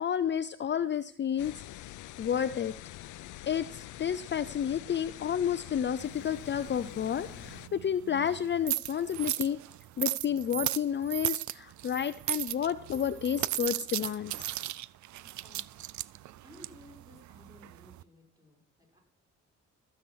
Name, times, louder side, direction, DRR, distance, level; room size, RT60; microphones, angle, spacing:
voice 1, 0.0-1.5 2.2-2.7 3.5-9.6 10.0-14.3, left 9 dB, 40° left, 12 dB, 0.5 m, -31 dB
sound 1, 1.4-7.7, left 15 dB, 80° left, 0.6 m, -45 dB
sound 2, 6.0-18.0, right 15 dB, 70° right, 0.5 m, -37 dB
voice 2, 15.2-15.9 16.4-19.0, equal, 15° right, -1 dB, 5.8 m, -56 dB
15.0 x 7.8 x 6.2 m, 0.64 s
cardioid pair, 90°, 30 cm